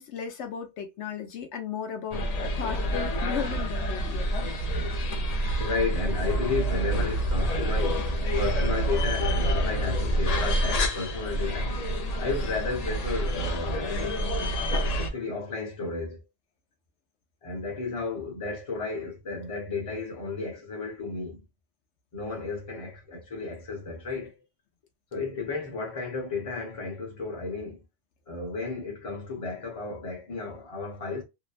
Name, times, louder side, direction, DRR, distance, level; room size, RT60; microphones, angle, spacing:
voice 1, 0.0-4.3, left 7 dB, 80° left, 1.0 m, -35 dB
sound 1, 2.1-15.1, right 1 dB, 50° left, 0.5 m, -27 dB
voice 2, 5.6-8.1 8.4-14.5 14.9-16.2 17.4-21.4 22.1-24.4 25.1-27.8 28.3-31.2, left 4 dB, 30° left, 1.0 m, -33 dB
2.9 x 2.1 x 2.3 m
omnidirectional pair, 1.2 m